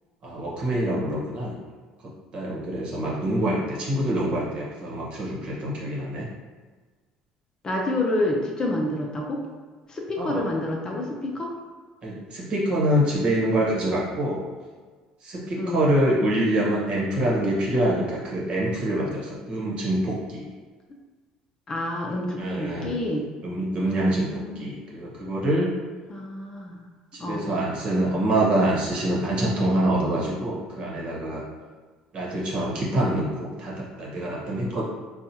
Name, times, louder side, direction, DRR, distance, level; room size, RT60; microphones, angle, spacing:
voice 1, 0.2-1.5 2.3-6.3 10.2-10.4 12.0-14.5 15.2-20.5 22.1-22.9 23.4-25.7 27.1-31.4 32.1-34.8, right 1 dB, 50° right, -4 dB, 1.2 m, -25 dB
voice 2, 7.6-9.4 9.9-11.5 15.6-15.8 21.7-23.3 23.8-24.7 26.1-26.8 27.2-27.5, left 1 dB, 30° left, -1 dB, 0.6 m, -28 dB
4.1 x 2.3 x 2.8 m, 1.4 s
supercardioid pair, 90°, 2 cm